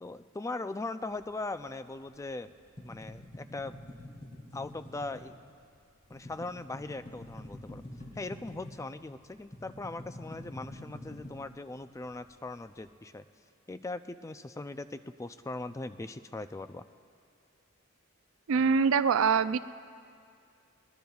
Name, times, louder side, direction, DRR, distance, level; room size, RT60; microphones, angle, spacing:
voice 1, 0.0-2.5 2.8-3.7 4.5-5.3 6.1-7.8 8.2-13.3 13.7-16.8, left 2 dB, 15° left, 11 dB, 0.4 m, -40 dB
sound 1, 1.2-2.3 2.6-8.9 9.2-12.2, left 1 dB, 40° left, 3.1 m, -46 dB
voice 2, 18.5-19.6, right 6 dB, 75° right, 14 dB, 0.4 m, -24 dB
22.5 x 20.5 x 2.4 m, 2.3 s
head